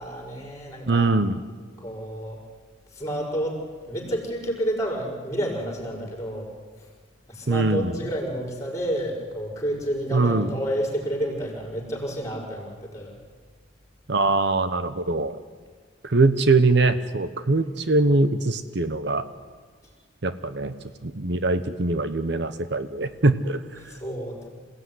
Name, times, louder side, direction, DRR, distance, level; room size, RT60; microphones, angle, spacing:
voice 1, 0.0-1.1 1.8-2.4 2.9-3.6 3.8-6.5 7.3-13.2 23.9-24.5, equal, 15° left, 0 dB, 5.6 m, -30 dB
voice 2, 0.9-1.4 7.5-8.0 10.1-10.5 14.1-15.4 16.0-19.3 20.2-20.7 21.0-24.0, right 3 dB, 60° right, 11 dB, 0.9 m, -22 dB
27.0 x 17.0 x 9.6 m, 1.5 s
head